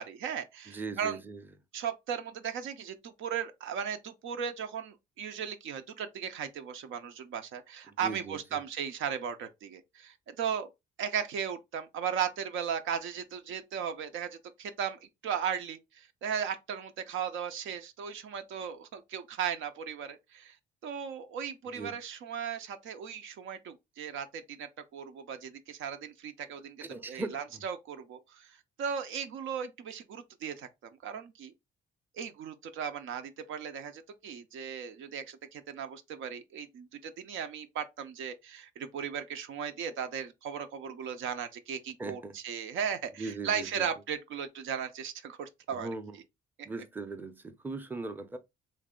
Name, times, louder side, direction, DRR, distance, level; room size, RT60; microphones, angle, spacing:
voice 1, 0.0-1.2 1.7-10.7 11.0-20.6 20.8-30.7 31.0-31.5 32.1-45.9, right 7 dB, 75° right, 0.6 m, -37 dB
voice 2, 0.7-1.4 7.9-8.6 21.7-21.9 26.8-27.6 42.0-42.3 43.2-43.9 45.7-46.2 46.6-48.4, right 3 dB, 10° right, 0.6 m, -39 dB
3.1 x 2.6 x 3.7 m
cardioid pair, 90°, 20 cm